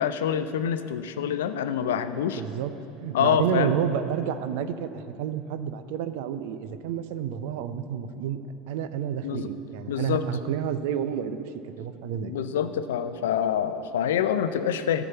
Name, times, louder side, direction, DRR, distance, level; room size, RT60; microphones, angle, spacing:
voice 1, 0.0-2.4 3.1-3.7 9.2-9.5 9.9-10.2 12.2-15.0, left 9 dB, 75° left, 11 dB, 0.5 m, -26 dB
voice 2, 2.4-2.7 3.0-8.4 8.7-12.3, right 9 dB, 65° right, 11 dB, 0.5 m, -30 dB
12.5 x 5.9 x 6.9 m, 2.7 s
hypercardioid pair, 80°, 0 cm